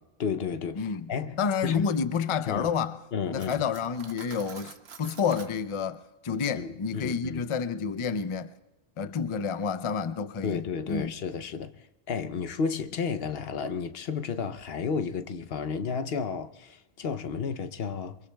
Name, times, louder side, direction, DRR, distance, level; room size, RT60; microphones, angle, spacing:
voice 1, 0.2-1.9 2.5-2.7 3.1-3.6 6.6-7.4 10.4-11.7 12.1-18.2, left 6 dB, 70° left, 1.0 m, -32 dB
voice 2, 0.8-1.1 1.4-3.0 3.3-8.5 9.0-11.1, left 6 dB, 40° left, 0.5 m, -29 dB
Cutlery silverware, 3.4-5.6, right 6 dB, 85° right, 1.1 m, -47 dB
27.5 x 23.0 x 2.2 m
omnidirectional pair, 1.0 m